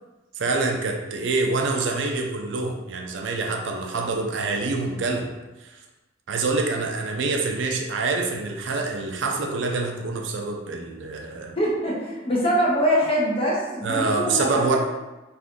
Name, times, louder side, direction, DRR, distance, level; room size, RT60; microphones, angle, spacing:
voice 1, 0.4-5.3 5.6-5.8 6.3-11.5 13.8-14.8, right 3 dB, 75° right, 2 dB, 0.4 m, -26 dB
voice 2, 11.6-14.8, equal, 30° left, -5 dB, 0.7 m, -23 dB
2.5 x 2.5 x 3.5 m, 1.1 s
head